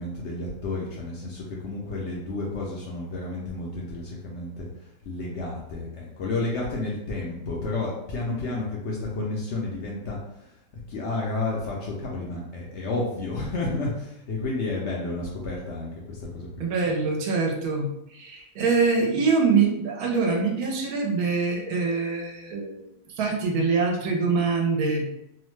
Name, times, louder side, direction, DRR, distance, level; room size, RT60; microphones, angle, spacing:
voice 1, 0.0-4.7 5.1-10.5 10.9-16.5, left 2 dB, 65° left, -3 dB, 0.7 m, -31 dB
voice 2, 16.6-25.0, right 4 dB, 80° right, 1 dB, 1.1 m, -24 dB
2.8 x 2.0 x 3.1 m, 0.82 s
omnidirectional pair, 1.6 m